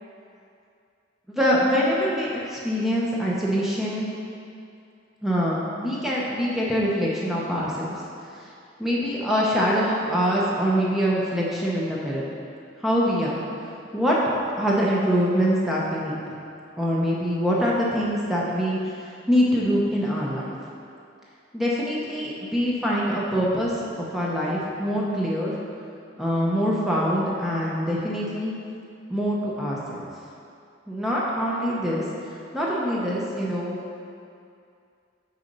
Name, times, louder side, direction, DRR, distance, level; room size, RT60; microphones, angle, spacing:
voice 1, 1.4-4.1 5.2-7.9 8.4-8.5 8.8-12.2 12.8-13.4 13.9-14.2 14.6-16.2 16.8-18.9 19.3-20.5 21.5-25.5 26.2-28.5 29.1-30.1 30.9-32.0 32.5-33.8, equal, ahead, -6 dB, 0.7 m, -24 dB
6.8 x 4.1 x 5.3 m, 2.5 s
head